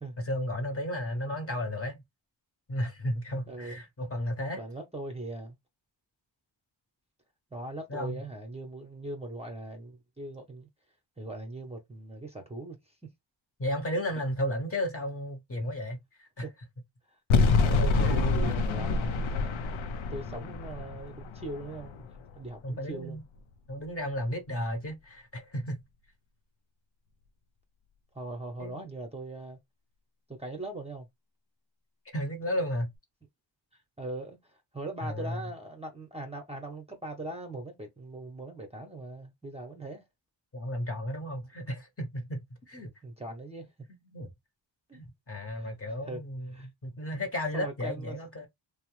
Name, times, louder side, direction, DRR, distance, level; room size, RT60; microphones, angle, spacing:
voice 1, 0.2-2.0 2.7-4.6 7.9-8.2 13.6-16.5 17.4-18.6 22.6-23.2 23.7-25.8 28.6-28.8 32.1-32.9 35.0-35.4 40.5-42.9 44.1-44.3 44.9-48.5, equal, 30° left, 0.9 m, -34 dB
voice 2, 3.5-3.8 4.6-5.6 7.5-10.7 11.2-12.8 16.4-16.5 17.6-19.8 20.1-22.1 22.3-23.2 28.1-29.6 30.4-31.1 34.0-40.0 43.0-43.7 44.9-45.0 45.5-45.8 46.1-46.2 46.5-46.7 47.5-48.2, right 2 dB, 15° right, 0.7 m, -40 dB
sound 1, 17.3-22.5, left 4 dB, 85° left, 0.6 m, -27 dB
2.8 x 2.0 x 3.0 m
cardioid pair, 85°, 46 cm